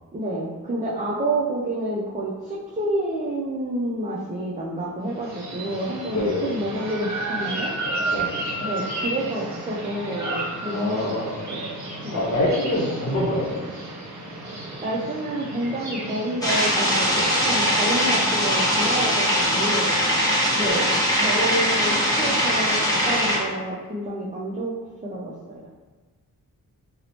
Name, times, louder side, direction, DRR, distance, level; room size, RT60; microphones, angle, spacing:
voice 1, 0.1-7.7 8.6-11.6 12.0-12.3 14.8-17.1 17.4-19.9 20.5-20.9 21.2-24.7 25.0-25.7, right 1 dB, 20° right, -6 dB, 0.4 m, -29 dB
sound 1, 5.1-19.1, right 2 dB, 50° right, 0.7 m, -33 dB
voice 2, 10.7-11.3 12.1-13.7 17.2-17.3 20.6-20.8, left 1 dB, 55° left, -3 dB, 0.8 m, -25 dB
sound 2, 16.4-23.4, equal, 10° left, 0.7 m, -21 dB
2.8 x 2.0 x 2.7 m, 1.3 s
cardioid pair, 75°, 35 cm